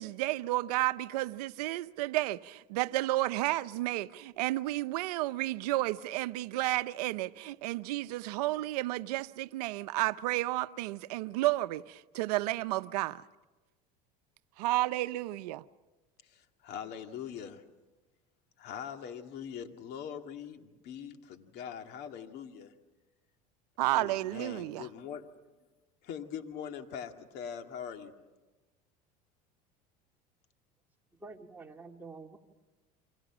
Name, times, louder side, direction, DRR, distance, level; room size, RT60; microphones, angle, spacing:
voice 1, 0.0-13.2 14.6-15.6 23.8-24.9, right 17 dB, 80° right, 0.7 m, -32 dB
voice 2, 16.6-17.6 18.6-22.7 23.9-25.3 26.0-28.1, left 8 dB, 55° left, 2.3 m, -42 dB
voice 3, 31.2-32.4, right 3 dB, 10° right, 2.6 m, -47 dB
29.5 x 25.5 x 6.2 m
supercardioid pair, 100°, 20 cm